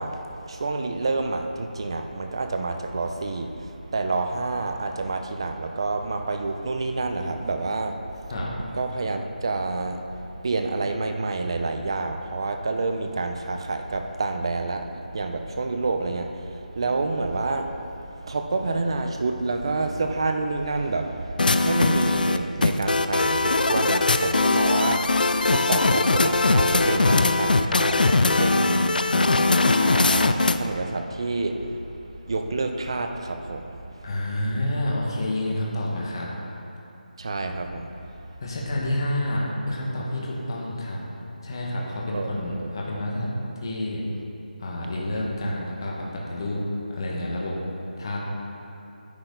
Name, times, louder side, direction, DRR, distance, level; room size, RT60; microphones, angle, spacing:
voice 1, 0.0-8.3 8.7-17.8 18.1-34.1 37.2-38.1 42.1-42.7, right 3 dB, 35° right, 5 dB, 0.6 m, -28 dB
sound 1, 21.4-30.7, left 3 dB, 70° left, 0.5 m, -20 dB
voice 2, 34.0-36.3 38.4-41.0 41.4-43.3 43.6-44.0 44.6-46.6 46.9-47.5 48.0-48.2, left 1 dB, 30° left, -4 dB, 1.5 m, -29 dB
10.5 x 7.9 x 4.0 m, 2.9 s
figure-of-eight pair, 175°, 5 cm